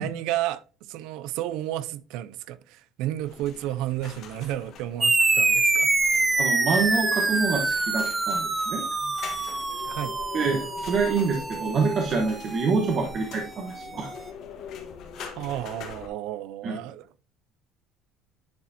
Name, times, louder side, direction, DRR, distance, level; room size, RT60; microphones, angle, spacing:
voice 1, 0.0-5.9 9.8-10.2 15.2-17.1, right 13 dB, 75° right, 0.4 m, -32 dB
sound 1, 3.2-16.1, left 6 dB, 55° left, 1.6 m, -44 dB
sound 2, 5.0-13.9, right 3 dB, 15° right, 0.5 m, -26 dB
voice 2, 6.4-8.8 10.3-14.1 16.6-16.8, right 4 dB, 45° right, 1.2 m, -26 dB
10.0 x 4.8 x 2.8 m
cardioid pair, 130°, 0 cm